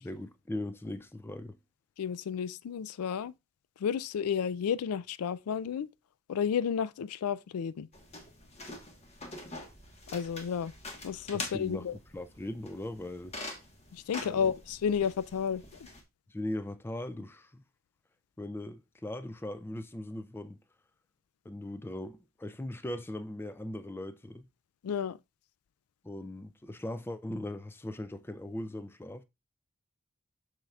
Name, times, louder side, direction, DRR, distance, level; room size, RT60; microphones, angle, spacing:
voice 1, 0.0-1.6 11.5-13.4 14.2-14.5 16.3-17.6 18.4-20.6 21.4-24.5 26.0-29.2, left 1 dB, 10° left, 0.3 m, -39 dB
voice 2, 2.0-3.3 3.8-5.9 6.3-7.9 10.1-10.7 11.0-11.9 13.9-15.6 24.8-25.2, left 7 dB, 90° left, 0.4 m, -31 dB
sound 1, 7.9-16.0, left 2 dB, 30° left, 1.3 m, -45 dB
7.4 x 6.5 x 2.3 m
head